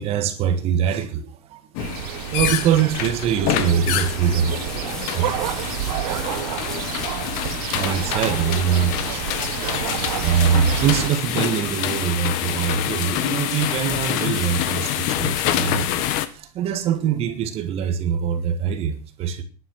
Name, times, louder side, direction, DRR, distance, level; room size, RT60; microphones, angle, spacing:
voice 1, 0.0-1.6 2.3-4.6 5.1-5.3 7.7-9.2 10.0-16.1 16.3-19.4, right 8 dB, 30° right, 1.6 m, -23 dB
sound 1, 1.7-16.3, left 12 dB, 45° left, 1.4 m, -27 dB
sound 2, 1.8-11.1, right 17 dB, 70° right, 0.6 m, -29 dB
sound 3, 3.6-17.3, left 1 dB, 5° left, 1.0 m, -41 dB
12.5 x 10.5 x 6.2 m
supercardioid pair, 170°, 20 cm